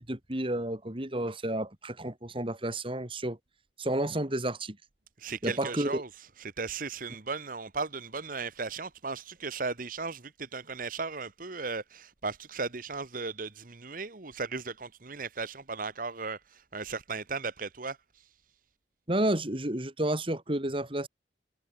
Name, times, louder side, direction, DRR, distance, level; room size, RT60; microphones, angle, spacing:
voice 1, 0.0-3.4 3.8-4.8 5.4-5.9 19.1-21.1, right 1 dB, 30° right, 2.7 m, -31 dB
voice 2, 5.2-18.3, right 4 dB, 50° right, 1.4 m, -36 dB
head